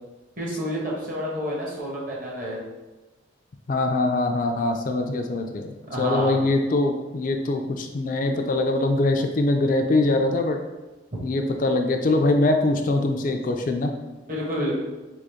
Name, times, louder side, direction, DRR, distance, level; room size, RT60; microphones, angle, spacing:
voice 1, 0.4-2.6 5.9-6.4 14.3-14.7, equal, 45° right, -4 dB, 1.1 m, -29 dB
voice 2, 3.7-10.6 11.2-13.9, left 2 dB, 40° left, 4 dB, 0.3 m, -23 dB
3.8 x 3.4 x 3.5 m, 1.1 s
head